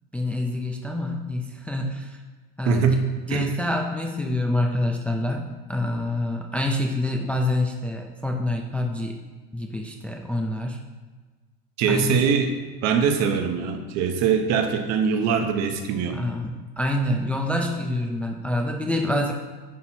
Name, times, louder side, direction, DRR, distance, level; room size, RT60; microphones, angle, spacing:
voice 1, 0.1-2.2 2.6-2.9 3.3-9.2 9.5-10.8 11.9-12.3 16.1-19.3, left 1 dB, 5° left, 1 dB, 0.4 m, -26 dB
voice 2, 2.7-3.5 11.8-12.6 12.8-16.2, right 6 dB, 55° right, 6 dB, 0.9 m, -23 dB
10.0 x 4.1 x 2.9 m, 1.3 s
supercardioid pair, 120°, 33 cm